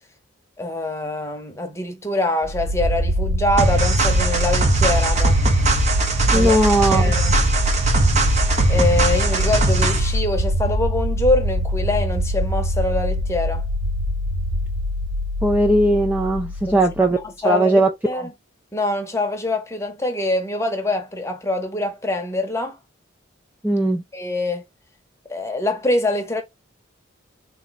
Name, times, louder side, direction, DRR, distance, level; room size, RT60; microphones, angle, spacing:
voice 1, 0.6-5.4 6.3-6.6 6.9-7.3 8.7-13.6 16.7-16.8 17.4-18.3 18.7-22.8 24.1-24.6 25.3-26.4, left 2 dB, 15° left, 0.9 m, -24 dB
sound 1, 2.4-17.2, right 1 dB, 75° right, 0.6 m, -23 dB
sound 2, 3.6-10.2, right 2 dB, 35° right, 0.8 m, -20 dB
voice 2, 6.3-7.0 15.4-17.2 17.4-18.2 23.6-24.0, right 1 dB, 10° right, 0.4 m, -18 dB
3.8 x 2.3 x 4.0 m
head